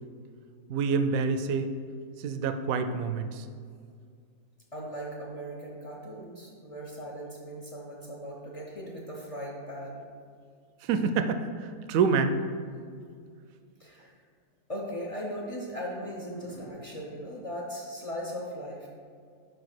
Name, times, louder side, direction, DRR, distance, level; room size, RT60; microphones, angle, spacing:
voice 1, 0.7-1.7 2.2-3.4 10.8-12.4, right 5 dB, 70° right, 9 dB, 0.9 m, -27 dB
voice 2, 4.7-10.0 13.8-14.1 14.7-18.9, equal, 40° left, -3 dB, 0.5 m, -38 dB
5.3 x 4.9 x 6.0 m, 2.2 s
omnidirectional pair, 1.7 m